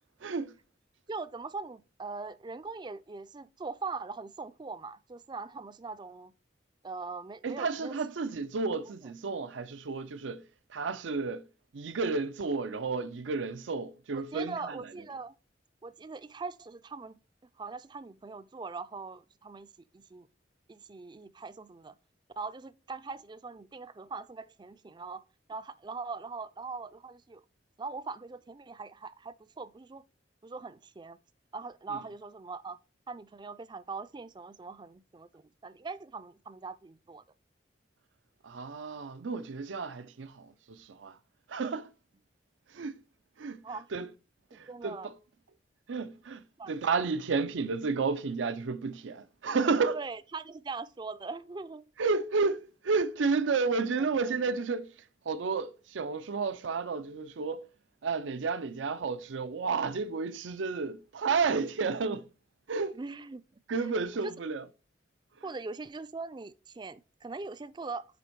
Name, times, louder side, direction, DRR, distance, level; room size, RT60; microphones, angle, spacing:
voice 1, 0.2-0.5 7.4-10.4 10.7-11.4 11.7-14.7 38.4-41.1 41.5-41.9 42.7-43.0 43.4-43.6 43.9-44.1 44.5-45.1 45.9-46.4 46.7-50.0 52.0-54.9 55.3-57.7 58.0-62.3 62.7-63.0 63.7-64.6, right 4 dB, 90° right, 0.5 m, -31 dB
voice 2, 1.1-6.3 6.8-8.0 9.0-9.1 14.1-15.3 15.8-17.2 17.6-19.7 19.9-20.3 20.7-21.9 22.4-25.2 25.5-27.4 27.8-30.0 30.4-31.2 31.5-32.8 33.1-37.2 43.6-43.9 44.5-45.1 46.6-46.7 49.9-52.2 53.7-54.3 62.9-63.4 63.8-63.9 64.2-64.3 65.4-68.1, right 4 dB, 25° right, 0.4 m, -41 dB
9.3 x 3.5 x 4.5 m
head